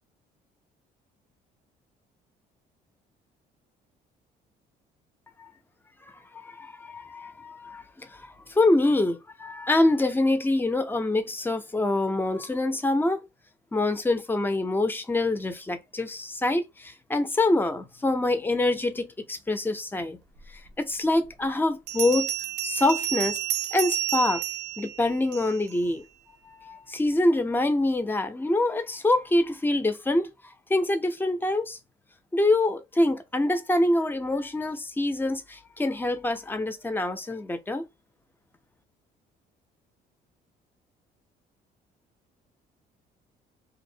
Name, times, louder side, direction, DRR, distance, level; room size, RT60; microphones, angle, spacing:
voice 1, 6.4-13.2 13.7-20.2 20.8-22.3 22.6-23.4 23.7-24.4 24.8-26.0 26.5-30.3 30.7-31.8 32.3-37.8, left 2 dB, 10° left, 0.4 m, -25 dB
Bell, 20.7-20.8 21.9-25.8, right 12 dB, 80° right, 0.4 m, -31 dB
2.5 x 2.0 x 2.6 m
cardioid pair, 110°, 17 cm